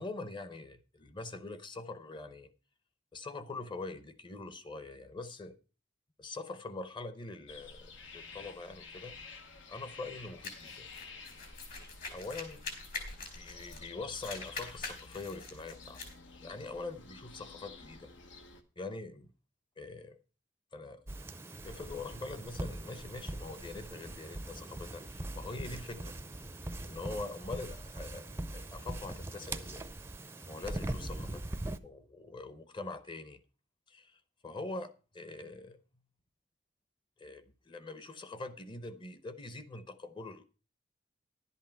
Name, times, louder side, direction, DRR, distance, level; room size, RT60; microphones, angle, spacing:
voice 1, 0.0-2.5 3.1-5.6 6.2-9.2 9.7-10.9 11.5-11.6 12.1-12.6 13.2-16.0 16.4-18.1 18.8-19.3 19.8-20.2 20.7-21.1 21.6-26.2 26.8-29.8 30.5-31.4 31.8-33.4 33.9-35.8 37.2-40.4, left 3 dB, 25° left, 0.8 m, -43 dB
sound 1, 7.5-18.6, left 4 dB, 85° left, 1.2 m, -51 dB
sound 2, 10.4-13.9 14.1-16.1, left 4 dB, 55° left, 3.0 m, -44 dB
sound 3, 21.1-31.8, right 1 dB, 15° right, 0.5 m, -41 dB
11.0 x 8.3 x 4.5 m
head